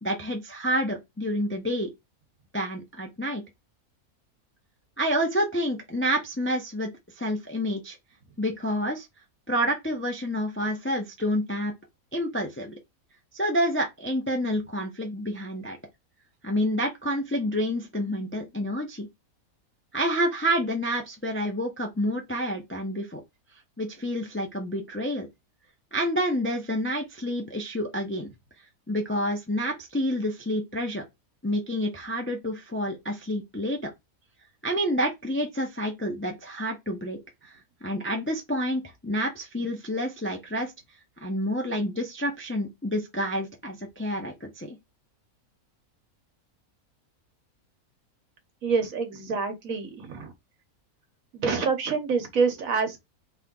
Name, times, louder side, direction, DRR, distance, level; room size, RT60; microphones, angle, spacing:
voice 1, 0.0-1.9 2.5-3.4 5.0-6.9 7.2-8.0 8.4-9.1 9.5-11.7 12.1-12.8 13.3-15.8 16.4-19.1 19.9-23.2 23.8-25.3 25.9-28.3 28.9-31.0 31.4-33.9 34.6-37.2 37.5-37.6 37.8-40.7 41.2-44.8, equal, 15° left, 0.4 m, -28 dB
voice 2, 48.6-50.3 51.3-53.1, right 5 dB, 65° right, 1.4 m, -27 dB
3.5 x 3.1 x 3.8 m
omnidirectional pair, 1.5 m